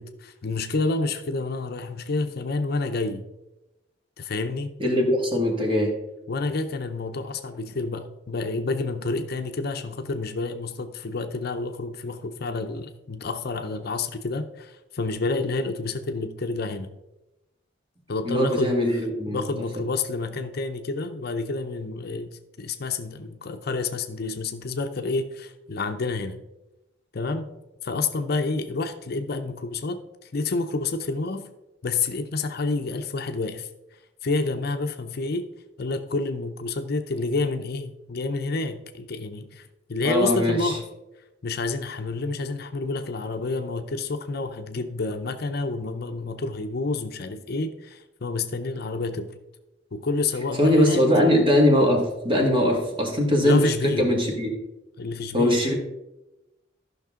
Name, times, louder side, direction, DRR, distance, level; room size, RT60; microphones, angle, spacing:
voice 1, 0.0-3.2 4.2-4.7 6.3-16.9 18.1-18.8 19.3-26.4 27.1-27.5 27.8-30.0 30.3-31.5 31.8-33.7 34.2-35.4 35.8-40.8 41.4-49.3 49.9-51.0 53.4-54.1 55.0-55.6, left 3 dB, 55° left, 7 dB, 0.7 m, -29 dB
voice 2, 4.8-5.9 18.2-19.5 40.0-40.8 50.6-54.5 55.3-55.7, left 1 dB, 30° right, 0 dB, 2.0 m, -21 dB
13.5 x 5.9 x 3.7 m, 0.97 s
head